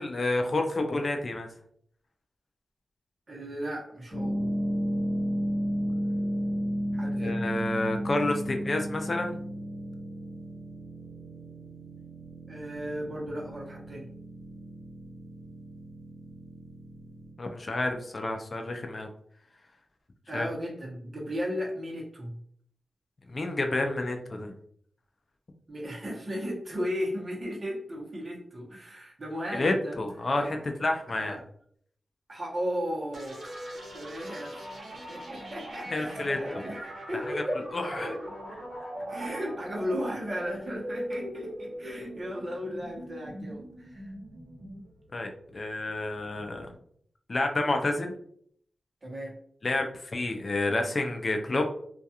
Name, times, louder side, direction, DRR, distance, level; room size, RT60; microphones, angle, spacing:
voice 1, 0.0-1.5 7.2-9.4 17.4-19.1 20.3-20.5 23.3-24.5 29.5-31.4 35.9-36.4 37.7-38.1 45.1-46.7 47.3-48.1 49.6-51.7, left 2 dB, 45° left, 4 dB, 0.4 m, -29 dB
voice 2, 3.3-4.4 6.9-7.4 12.5-14.1 20.3-22.4 25.7-30.0 30.4-30.6 31.2-31.4 32.3-36.8 37.1-37.6 37.9-38.3 39.1-44.1 49.0-49.3, equal, 40° right, -3 dB, 0.8 m, -35 dB
sound 1, 4.1-17.3, equal, 55° right, 1.1 m, -33 dB
sound 2, 33.1-46.7, equal, 75° right, 0.8 m, -41 dB
2.3 x 2.2 x 2.7 m, 0.63 s
wide cardioid pair, 85°, 0 cm